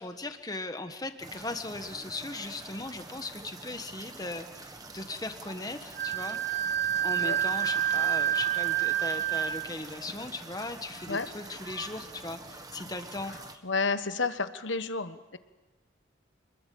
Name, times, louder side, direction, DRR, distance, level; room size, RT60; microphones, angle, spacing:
voice 1, 0.0-6.4 7.0-13.3, left 2 dB, 20° left, 8 dB, 1.4 m, -38 dB
sound 1, 1.2-13.6, right 3 dB, 20° right, 1.5 m, -46 dB
Wind instrument woodwind instrument, 6.0-9.7, right 10 dB, 55° right, 1.8 m, -28 dB
voice 2, 13.6-15.4, left 4 dB, 70° left, 11 dB, 1.3 m, -30 dB
27.0 x 21.5 x 8.6 m, 1.2 s
head